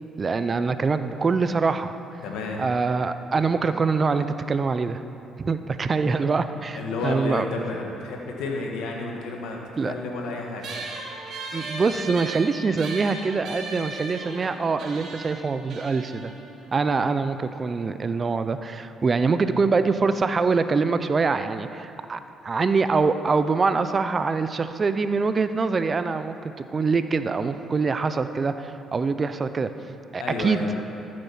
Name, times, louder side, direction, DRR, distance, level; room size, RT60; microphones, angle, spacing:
voice 1, 0.2-1.9 2.6-5.0 5.4-7.5 9.8-9.9 11.5-16.3 16.7-26.4 26.7-29.7 30.1-30.6, right 4 dB, 40° right, 11 dB, 0.6 m, -24 dB
voice 2, 2.2-2.6 6.7-9.6 9.8-10.7 30.2-30.7, left 3 dB, 80° left, 0 dB, 1.7 m, -31 dB
sound 1, 10.6-17.4, right 3 dB, 70° right, 2.0 m, -37 dB
13.5 x 7.7 x 5.7 m, 2.7 s
supercardioid pair, 70°, 0 cm